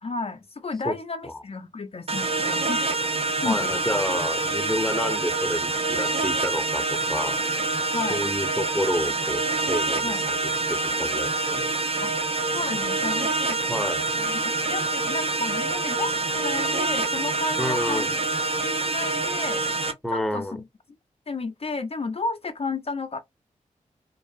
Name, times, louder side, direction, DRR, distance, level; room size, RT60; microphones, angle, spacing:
voice 1, 0.0-2.9 3.4-4.0 7.9-8.3 10.0-10.2 12.0-13.6 14.2-14.4 14.7-18.2 18.6-19.6 20.1-20.5 21.3-23.2, left 3 dB, 45° left, 0.5 m, -32 dB
sound 1, 2.1-19.9, right 3 dB, 45° right, 0.7 m, -26 dB
voice 2, 3.4-7.4 8.1-10.4 10.7-11.7 13.7-14.0 17.6-18.1 20.0-20.6, left 1 dB, 5° left, 0.7 m, -29 dB
2.6 x 2.3 x 2.4 m
cardioid pair, 40°, 14 cm